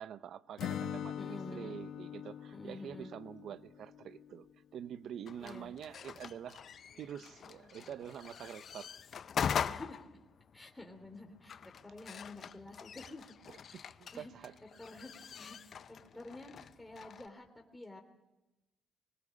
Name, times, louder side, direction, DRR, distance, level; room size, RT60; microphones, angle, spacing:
voice 1, 0.0-4.5 4.7-6.6 6.9-8.9 13.5-14.6, right 9 dB, 70° right, 15 dB, 0.8 m, -46 dB
Acoustic guitar / Strum, 0.6-4.5, left 8 dB, 75° left, 1.3 m, -43 dB
voice 2, 1.2-1.8 2.5-3.1 5.4-5.7 9.7-10.1 10.5-13.3 13.7-14.3 14.8-18.0, left 2 dB, 10° left, 2 dB, 3.3 m, -50 dB
sound 1, 5.3-17.3, left 7 dB, 55° left, 0.7 m, -42 dB
21.0 x 19.0 x 8.6 m, 1.0 s
cardioid pair, 90°, 0 cm